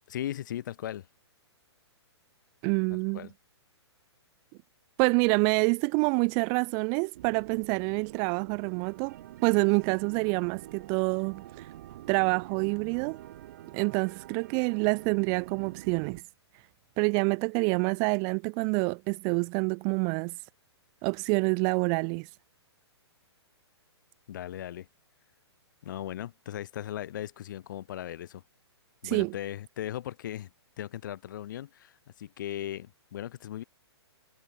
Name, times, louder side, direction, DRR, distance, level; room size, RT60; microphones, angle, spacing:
voice 1, 0.1-1.1 3.1-3.3 24.3-24.9 25.8-28.4 29.0-30.5 30.8-33.6, left 12 dB, 45° left, 6.7 m, -37 dB
voice 2, 2.6-3.3 5.0-9.1 9.4-11.7 12.1-13.2 13.7-16.2 17.0-20.4 21.0-22.3 29.0-29.3, right 40 dB or more, 20° right, 0.8 m, -27 dB
sound 1, 7.1-16.2, right 14 dB, 40° right, 4.9 m, -47 dB
hypercardioid pair, 170°, 14 cm